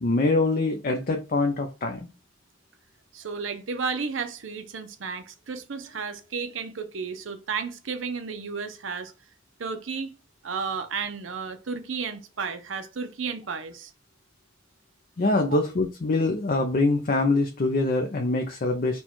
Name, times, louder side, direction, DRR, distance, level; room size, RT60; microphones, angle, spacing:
voice 1, 0.0-2.1 15.2-19.0, left 2 dB, 45° left, 0.5 m, -24 dB
voice 2, 3.1-9.1 9.6-10.1 10.4-13.9 15.5-15.6, right 5 dB, 80° right, 0.7 m, -33 dB
4.3 x 2.3 x 4.4 m
head